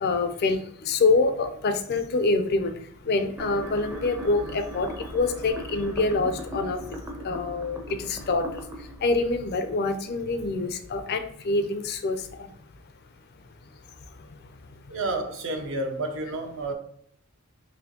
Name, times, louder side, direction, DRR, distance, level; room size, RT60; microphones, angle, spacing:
voice 1, 0.0-2.7 3.1-6.8 7.2-8.4 9.0-12.2, left 3 dB, 45° left, 0.4 m, -25 dB
sound 1, 3.4-10.4, right 1 dB, 10° right, 0.5 m, -39 dB
voice 2, 14.9-16.7, right 2 dB, 60° right, 0.7 m, -30 dB
4.2 x 3.0 x 2.8 m
head